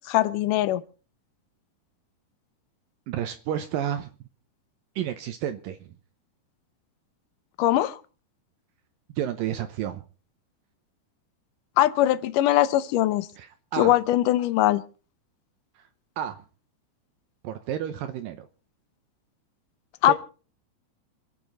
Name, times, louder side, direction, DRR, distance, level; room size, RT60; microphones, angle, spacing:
voice 1, 0.1-0.8 7.6-8.0 11.8-13.3 13.8-14.8 20.0-20.1, left 14 dB, 75° left, 2.1 m, -21 dB
voice 2, 3.1-4.1 5.0-5.8 9.1-10.0 13.4-13.9 15.8-15.9 16.2-16.4 17.4-18.5 20.1-20.2, right 10 dB, 75° right, 2.4 m, -31 dB
27.0 x 9.2 x 4.0 m
omnidirectional pair, 4.5 m